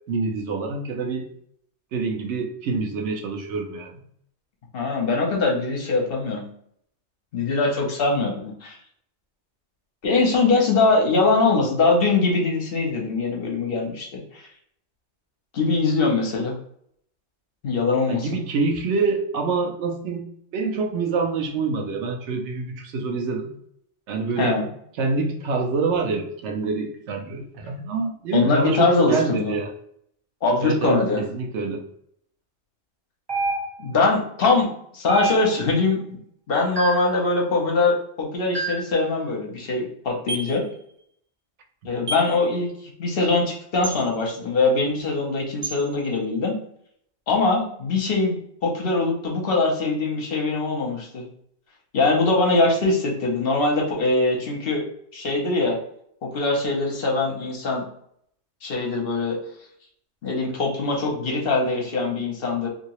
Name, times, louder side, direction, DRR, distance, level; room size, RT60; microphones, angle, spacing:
voice 1, 0.1-1.3 1.9-4.0 18.1-20.3 20.5-23.5 24.1-24.6 25.0-29.7 30.6-31.8, right 4 dB, 80° right, 2 dB, 0.9 m, -26 dB
voice 2, 4.7-6.4 7.3-8.8 10.0-14.4 15.5-16.6 17.6-18.3 24.4-24.6 28.3-29.6 30.4-31.2 33.8-36.2 36.5-40.6 41.8-42.7 43.0-46.6 47.3-51.3 51.9-54.8 55.1-55.8 56.2-57.9 58.6-59.4 60.2-62.7, left 3 dB, 60° left, 0 dB, 0.9 m, -22 dB
sound 1, 33.3-34.0 35.1-35.8 36.8-37.2 38.5-39.0 40.3-40.6 42.1-42.4 43.8-44.0 45.6-45.8, right 3 dB, 30° right, 0.5 m, -28 dB
2.8 x 2.7 x 2.9 m, 0.69 s
omnidirectional pair, 1.2 m